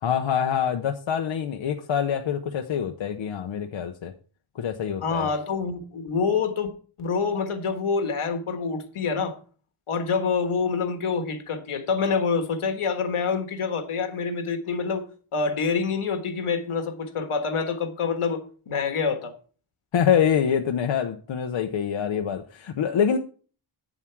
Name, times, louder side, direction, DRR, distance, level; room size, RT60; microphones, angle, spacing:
voice 1, 0.0-4.1 4.5-5.3 19.9-23.2, left 8 dB, 65° left, 0.8 m, -25 dB
voice 2, 5.0-6.7 7.0-9.4 9.9-19.3, left 5 dB, 85° left, 1.6 m, -26 dB
9.0 x 7.4 x 4.5 m
wide cardioid pair, 140°, 49 cm